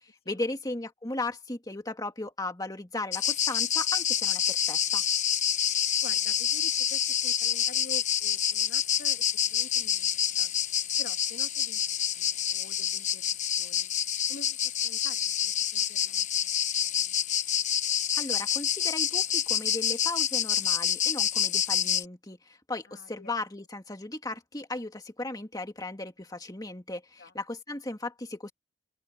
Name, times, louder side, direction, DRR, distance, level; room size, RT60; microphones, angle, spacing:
voice 1, 0.0-5.0 18.1-28.5, left 2 dB, 20° left, 2.3 m, -36 dB
sound 1, 3.1-22.0, left 9 dB, 40° left, 1.0 m, -27 dB
voice 2, 6.0-10.1 10.4-10.5 11.0-11.8 12.2-13.9 14.3-17.2 22.9-23.3 27.2-27.3, left 2 dB, 55° left, 2.5 m, -48 dB
open air
head